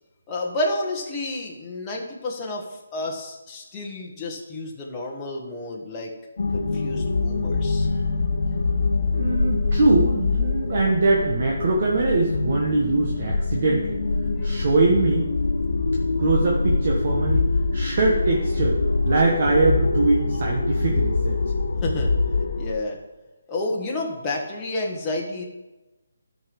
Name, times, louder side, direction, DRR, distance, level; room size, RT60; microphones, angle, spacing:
voice 1, 0.3-6.1 6.5-7.9 21.8-22.1 22.6-23.0 23.5-25.4, left 2 dB, 15° left, -3 dB, 1.5 m, -30 dB
sound 1, 6.4-22.7, left 3 dB, 65° left, 1.3 m, -24 dB
voice 2, 9.1-14.0 14.4-15.3 16.2-17.4 17.7-18.8 19.0-21.4, right 3 dB, 40° right, -2 dB, 1.5 m, -22 dB
12.0 x 5.5 x 5.4 m, 1.1 s
hypercardioid pair, 165°, 0 cm